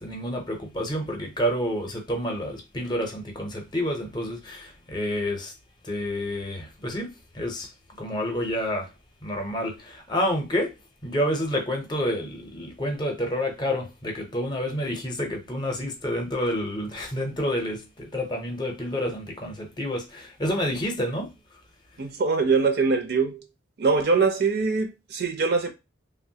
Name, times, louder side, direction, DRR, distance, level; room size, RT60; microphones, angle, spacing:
voice 1, 0.0-5.5 5.8-7.7 8.0-8.9 9.2-10.7 11.0-21.3, equal, 25° left, 0.6 m, -29 dB
voice 2, 22.0-23.4 23.8-25.7, right 4 dB, 55° right, 0.5 m, -23 dB
3.0 x 2.1 x 2.7 m
head